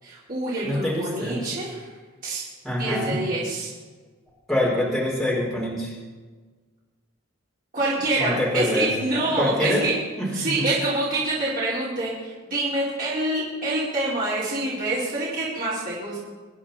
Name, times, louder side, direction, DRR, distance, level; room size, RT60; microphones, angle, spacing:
voice 1, 0.0-1.9 2.2-2.4 2.8-3.7 7.7-9.9 10.3-16.2, right 2 dB, 45° right, -9 dB, 4.7 m, -26 dB
voice 2, 0.6-1.4 2.6-3.1 4.5-5.9 8.2-8.9 9.4-9.9 10.2-10.3 10.6-10.7, left 1 dB, ahead, -6 dB, 4.9 m, -25 dB
25.5 x 10.0 x 4.4 m, 1.4 s
head